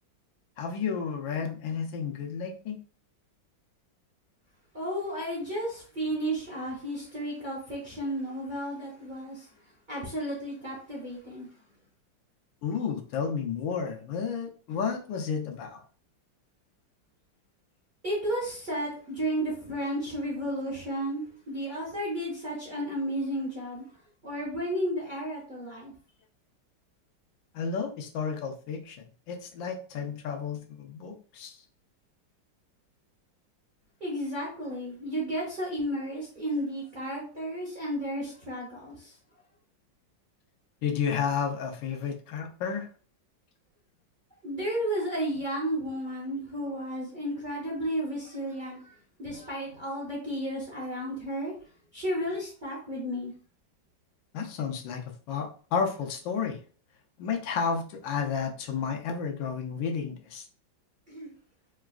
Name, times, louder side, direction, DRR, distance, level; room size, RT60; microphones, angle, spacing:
voice 1, 0.6-2.8 12.6-15.8 27.5-29.0 29.3-31.6 40.8-42.9 54.3-55.0 55.3-56.6 57.2-60.4, left 6 dB, 90° left, 3 dB, 1.4 m, -31 dB
voice 2, 4.7-9.5 9.9-11.5 18.0-23.8 24.2-25.9 34.0-39.1 44.4-51.5 51.9-53.3 61.1-61.3, equal, 40° right, -4 dB, 0.7 m, -33 dB
3.8 x 2.3 x 2.4 m, 0.41 s
omnidirectional pair, 2.0 m